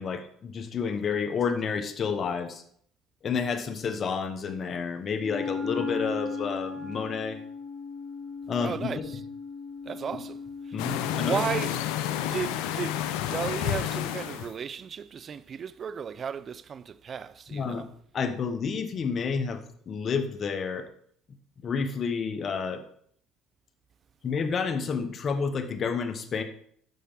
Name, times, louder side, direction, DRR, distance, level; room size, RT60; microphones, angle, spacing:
voice 1, 0.0-2.6 3.2-7.4 8.5-8.9 10.7-11.4 17.5-17.9 18.1-19.6 19.9-20.9 21.6-22.8 24.2-26.4, left 5 dB, 45° left, 1.0 m, -30 dB
Wind instrument woodwind instrument, 5.2-11.9, left 4 dB, 60° left, 3.5 m, -37 dB
voice 2, 8.6-9.2 9.8-11.8 12.2-17.9, right 7 dB, 45° right, 0.5 m, -35 dB
sound 1, 10.8-14.5, left 11 dB, 80° left, 0.6 m, -30 dB
9.4 x 6.7 x 3.6 m
supercardioid pair, 75°, 0 cm